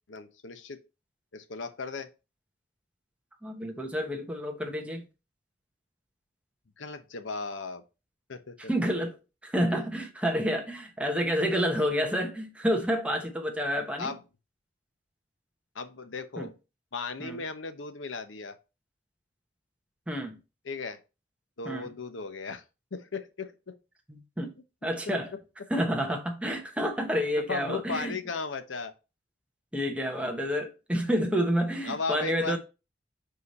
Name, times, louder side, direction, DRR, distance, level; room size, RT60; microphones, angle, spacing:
voice 1, 0.1-0.8 1.3-2.1 6.8-7.8 8.3-8.6 14.0-14.2 15.7-16.5 16.9-18.5 20.6-21.0 21.6-22.6 22.9-23.7 27.5-28.9 31.8-32.6, left 4 dB, 90° left, 0.8 m, -36 dB
voice 2, 3.4-5.1 8.6-9.2 9.4-14.1 16.4-16.5 17.2-17.4 20.1-20.4 21.6-21.9 24.1-24.5 24.8-25.3 25.7-28.2 29.7-32.6, equal, 5° right, 1.0 m, -29 dB
5.0 x 4.7 x 4.2 m
head